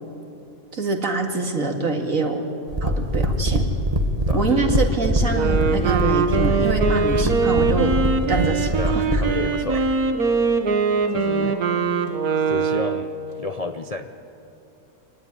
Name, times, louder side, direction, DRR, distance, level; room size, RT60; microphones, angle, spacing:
voice 1, 0.7-2.4 2.8-3.7 4.3-7.9 8.3-9.2 11.4-11.5, right 3 dB, 55° right, 3 dB, 2.6 m, -25 dB
sound 1, 2.7-9.4, right 1 dB, 25° right, 1.6 m, -23 dB
voice 2, 4.3-5.4 8.8-9.9 11.1-11.6 12.4-13.1 13.4-14.1, left 3 dB, 35° left, 6 dB, 0.6 m, -30 dB
Wind instrument woodwind instrument, 5.2-13.2, right 5 dB, 70° right, 2.0 m, -22 dB
26.5 x 18.5 x 9.9 m, 2.8 s
omnidirectional pair, 1.6 m